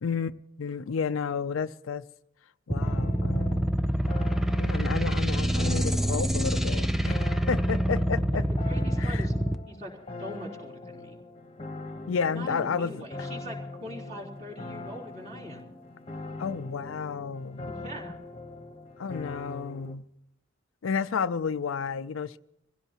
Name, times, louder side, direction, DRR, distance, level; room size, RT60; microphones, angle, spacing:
voice 1, 0.0-2.0 2.7-3.7 4.6-7.2 7.5-8.5 9.0-9.3 12.1-13.3 16.4-17.7 19.0-20.0 20.8-22.4, left 6 dB, 80° left, 0.5 m, -31 dB
sound 1, 2.7-9.5, right 1 dB, ahead, 0.5 m, -26 dB
sound 2, 2.8-19.9, left 2 dB, 30° left, 1.1 m, -42 dB
voice 2, 8.3-9.3 9.7-9.9 10.2-11.2 12.3-15.7 17.7-18.1, equal, 35° right, 3.8 m, -42 dB
24.5 x 16.5 x 3.0 m
head